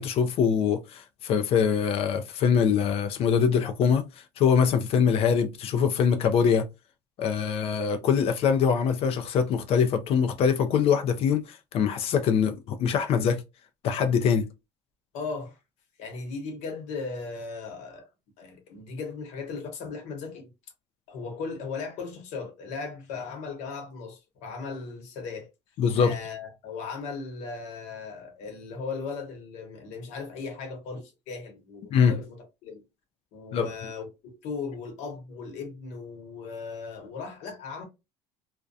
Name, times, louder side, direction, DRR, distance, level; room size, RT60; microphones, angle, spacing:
voice 1, 0.0-4.0 4.4-6.7 7.2-13.4 13.8-14.5 25.8-26.2 31.9-32.2 33.5-33.7, left 7 dB, 50° left, 0.4 m, -23 dB
voice 2, 15.1-15.6 16.0-18.1 18.4-20.5 21.1-25.5 26.0-32.8 33.3-37.8, left 4 dB, 70° left, 1.0 m, -37 dB
2.3 x 2.2 x 2.5 m
cardioid pair, 135°, 13 cm